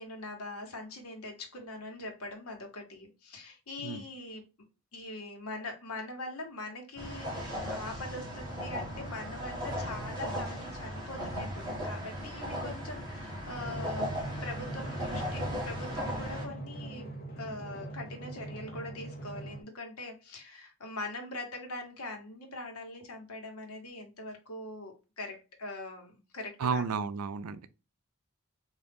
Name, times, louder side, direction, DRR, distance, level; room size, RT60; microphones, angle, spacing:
voice 1, 0.0-4.4 4.9-17.1 17.4-26.8, left 2 dB, 80° left, 1.2 m, -42 dB
sound 1, 7.0-16.5, equal, 15° right, 1.3 m, -37 dB
Drum, 13.5-19.6, right 2 dB, 40° left, 1.0 m, -42 dB
voice 2, 26.6-27.7, right 5 dB, 85° right, 0.4 m, -32 dB
3.8 x 2.6 x 3.5 m
head